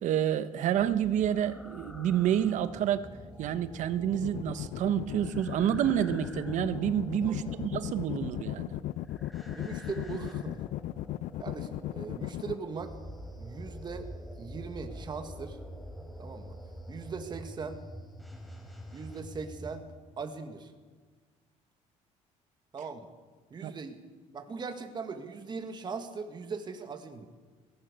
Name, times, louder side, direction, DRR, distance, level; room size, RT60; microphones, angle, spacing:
voice 1, 0.0-3.1 3.4-8.8 23.6-23.7, right 10 dB, 65° right, 12 dB, 1.2 m, -29 dB
sound 1, 0.7-19.8, equal, ahead, 4.3 m, -47 dB
sound 2, 4.1-12.5, left 15 dB, 70° left, 0.5 m, -36 dB
voice 2, 7.3-7.6 9.5-10.6 11.4-12.9 13.4-14.1 14.4-15.6 16.0-16.6 16.9-17.8 18.9-20.7 22.7-23.1 23.5-24.0 24.3-27.3, right 5 dB, 35° right, 6 dB, 2.0 m, -40 dB
23.5 x 18.0 x 6.9 m, 1.5 s
cardioid pair, 115°, 14 cm